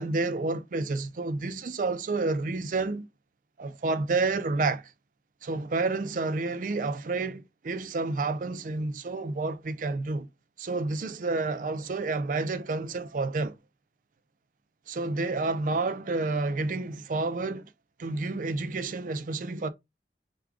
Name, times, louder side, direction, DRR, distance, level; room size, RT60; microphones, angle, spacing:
voice 1, 0.0-3.1 3.6-4.9 5.4-10.3 10.6-13.6 14.9-17.7 18.0-19.7, right 3 dB, 45° right, 0.4 m, -29 dB
4.7 x 2.3 x 3.5 m
head